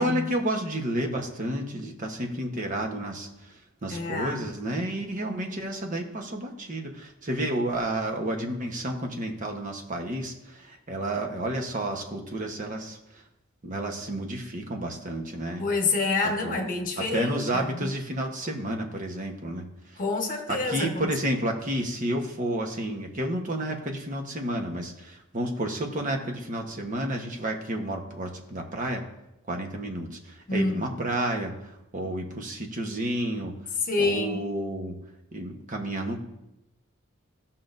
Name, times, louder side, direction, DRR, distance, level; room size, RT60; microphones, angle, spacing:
voice 1, 0.0-13.0 13.6-15.6 16.2-16.6 17.0-20.0 20.5-29.0 29.5-33.5 34.0-34.9 35.3-36.2, right 1 dB, 40° right, 2 dB, 1.2 m, -31 dB
voice 2, 3.9-4.4 15.6-17.9 20.0-21.1 30.5-30.8 33.9-34.4, left 3 dB, 40° left, 2 dB, 1.3 m, -28 dB
15.0 x 5.7 x 2.6 m, 0.88 s
head